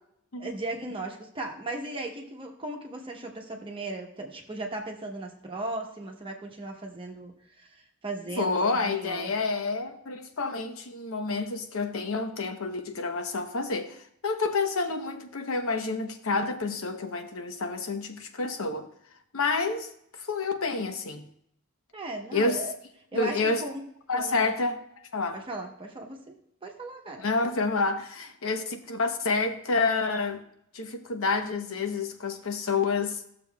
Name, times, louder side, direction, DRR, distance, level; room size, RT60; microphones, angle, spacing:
voice 1, 0.4-9.3 21.9-22.7 23.1-23.8 24.1-24.5 25.3-26.4 26.6-27.5, right 2 dB, 25° right, 1.0 m, -37 dB
voice 2, 8.4-14.0 14.2-18.8 19.3-21.2 22.3-22.6 23.1-23.6 24.1-24.8 25.1-25.4 27.2-30.4 30.7-33.2, left 3 dB, 70° left, 0.9 m, -29 dB
14.0 x 6.9 x 2.3 m
head